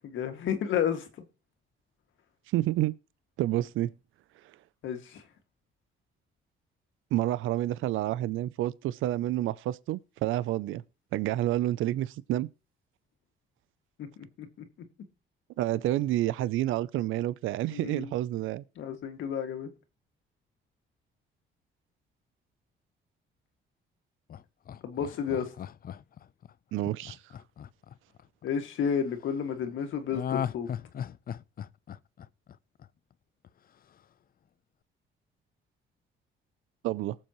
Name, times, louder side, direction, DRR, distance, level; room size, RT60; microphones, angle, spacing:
voice 1, 0.0-1.1 4.8-5.2 14.0-14.1 14.4-14.5 17.7-18.1 18.8-19.7 24.8-25.5 28.4-30.7, left 7 dB, 75° left, 2.1 m, -31 dB
voice 2, 2.5-2.9 3.4-3.9 7.1-10.8 11.1-12.5 15.6-18.6 26.7-27.2 36.8-37.2, right 14 dB, 85° right, 0.5 m, -29 dB
Laughter, 24.3-28.5 30.1-33.1 33.4-33.5, left 9 dB, 50° left, 0.5 m, -37 dB
19.0 x 7.4 x 3.0 m
cardioid pair, 90°, 20 cm